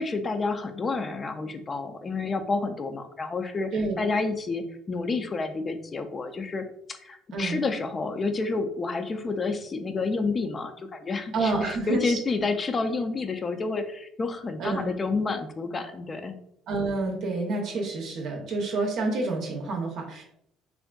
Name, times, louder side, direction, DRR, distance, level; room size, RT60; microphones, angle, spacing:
voice 1, 0.0-3.7 4.0-16.4, left 3 dB, 25° left, 7 dB, 0.4 m, -29 dB
voice 2, 11.3-12.2 14.6-14.9 16.7-20.2, right 3 dB, 60° right, 1 dB, 0.6 m, -28 dB
3.5 x 2.4 x 2.2 m, 0.72 s
cardioid pair, 110°, 0 cm